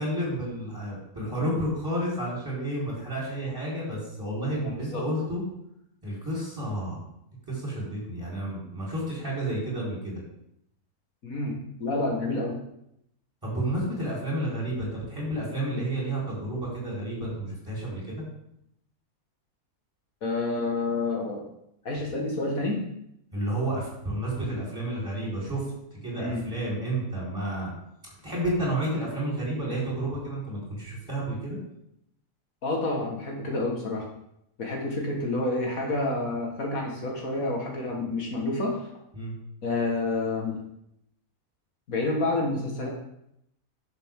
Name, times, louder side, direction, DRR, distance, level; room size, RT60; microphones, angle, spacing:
voice 1, 0.0-5.4 6.0-7.0 7.5-10.2 13.4-18.2 23.3-25.7 25.9-27.7 28.2-31.6 39.1-39.3, right 1 dB, 15° right, -6 dB, 4.3 m, -31 dB
voice 2, 4.6-5.1 11.2-12.6 20.2-21.5 21.8-22.8 26.2-26.4 32.6-34.1 34.6-38.9 39.6-40.6 41.9-42.9, left 2 dB, 65° left, 0 dB, 2.0 m, -29 dB
11.0 x 6.9 x 3.7 m, 0.77 s
omnidirectional pair, 1.6 m